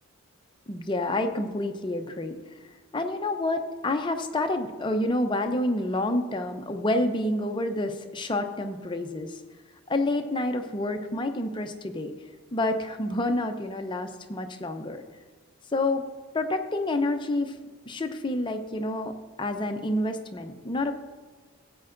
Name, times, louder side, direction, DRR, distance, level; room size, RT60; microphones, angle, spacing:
voice 1, 0.7-2.3 2.9-9.4 9.9-12.1 12.5-15.0 15.7-16.1 16.3-17.6 17.9-20.9, left 1 dB, 20° left, 6 dB, 0.5 m, -28 dB
14.0 x 8.5 x 2.5 m, 1.5 s
head